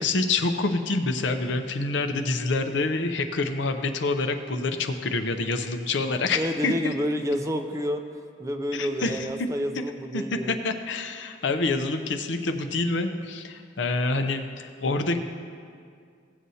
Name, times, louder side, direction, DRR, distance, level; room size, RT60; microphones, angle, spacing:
voice 1, 0.0-6.9 8.7-9.5 9.7-9.8 10.1-15.2, left 3 dB, 65° left, 6 dB, 0.6 m, -27 dB
voice 2, 6.3-8.0 8.4-10.6, equal, 15° right, 6 dB, 0.4 m, -29 dB
16.5 x 7.6 x 2.8 m, 2.2 s
head